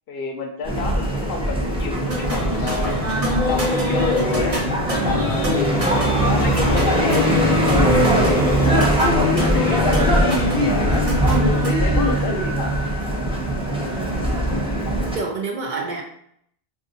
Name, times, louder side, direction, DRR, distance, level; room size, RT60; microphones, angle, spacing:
voice 1, 0.1-3.0 3.4-4.6 5.0-5.6 6.0-7.4 7.7-8.9 9.4-12.7, left 4 dB, 70° left, 4 dB, 0.7 m, -30 dB
sound 1, 0.6-15.2, equal, 5° right, 0.6 m, -21 dB
sound 2, 2.1-11.7, left 1 dB, 35° right, 1.0 m, -24 dB
voice 2, 13.9-14.3 15.1-16.0, right 4 dB, 55° right, 0 dB, 0.6 m, -29 dB
2.5 x 2.4 x 3.8 m, 0.71 s
omnidirectional pair, 1.1 m